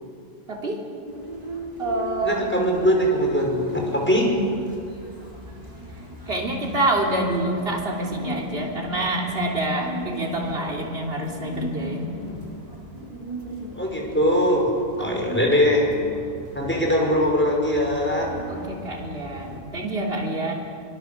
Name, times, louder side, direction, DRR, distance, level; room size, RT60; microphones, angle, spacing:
voice 1, 0.5-0.8 1.8-2.5 6.3-12.1 15.0-15.1 18.5-20.5, right 1 dB, 60° right, -1 dB, 3.4 m, -27 dB
sound 1, 1.1-19.6, equal, 35° right, 4.2 m, -38 dB
voice 2, 2.2-4.3 13.7-14.7 15.0-15.9 16.5-18.3, equal, 10° left, -1 dB, 5.7 m, -21 dB
25.5 x 23.0 x 7.3 m, 2.4 s
omnidirectional pair, 1.1 m